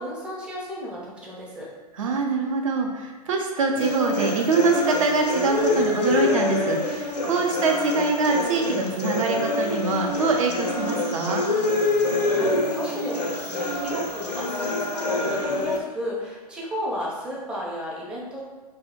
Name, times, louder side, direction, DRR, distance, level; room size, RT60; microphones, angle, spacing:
voice 1, 0.0-1.7 12.2-18.4, equal, 5° right, -6 dB, 0.5 m, -33 dB
voice 2, 2.0-11.4, right 3 dB, 55° right, 2 dB, 0.5 m, -24 dB
sound 1, 3.8-15.8, left 2 dB, 75° left, 0.5 m, -26 dB
2.7 x 2.0 x 3.7 m, 1.3 s
figure-of-eight pair, 105°, 21 cm